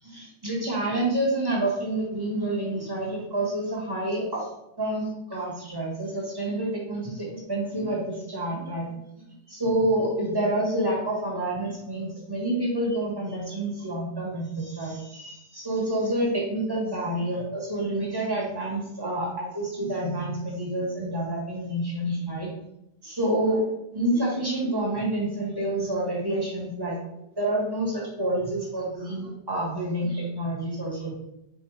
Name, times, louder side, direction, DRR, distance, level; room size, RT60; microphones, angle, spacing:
voice 1, 0.0-4.5 4.8-8.9 9.5-22.5 23.0-23.6 23.9-27.0 27.4-31.1, right 1 dB, 15° right, -4 dB, 0.9 m, -28 dB
4.0 x 2.6 x 4.7 m, 0.83 s
omnidirectional pair, 2.0 m